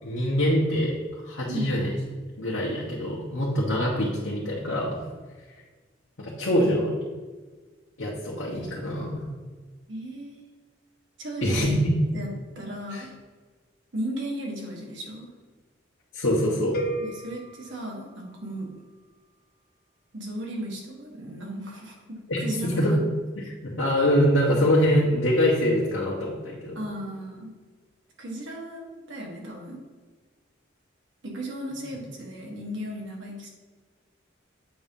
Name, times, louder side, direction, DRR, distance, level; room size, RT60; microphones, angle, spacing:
voice 1, 0.0-1.9 2.4-5.0 6.2-6.9 8.0-9.2 11.4-11.9 12.9-13.0 16.1-16.8 22.3-22.4 22.8-23.0 23.4-23.5 23.8-26.8, equal, 80° left, -5 dB, 1.2 m, -24 dB
voice 2, 1.5-1.8 9.9-10.4 11.2-11.8 12.1-12.3 12.5-13.1 13.9-15.3 17.0-18.7 20.1-23.0 26.7-27.5 28.2-29.8 31.2-33.5, right 1 dB, 75° right, 0 dB, 1.4 m, -35 dB
sound 1, 16.7-18.8, right 1 dB, 50° left, 0.7 m, -35 dB
7.8 x 2.8 x 5.3 m, 1.4 s
head